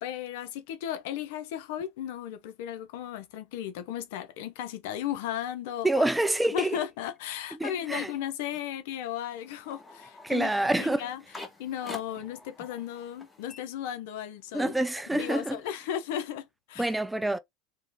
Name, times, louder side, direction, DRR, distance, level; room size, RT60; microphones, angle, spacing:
voice 1, 0.0-6.1 6.5-10.5 10.8-11.2 11.6-14.7 15.1-16.9, left 10 dB, 75° left, 0.8 m, -35 dB
voice 2, 5.8-6.7 7.6-8.1 10.2-11.0 14.5-15.6 16.8-17.4, right 1 dB, 10° right, 0.5 m, -27 dB
sound 1, 9.3-14.4 14.7-16.3, left 3 dB, 15° left, 1.8 m, -48 dB
3.8 x 3.0 x 4.1 m
supercardioid pair, 100°, 0 cm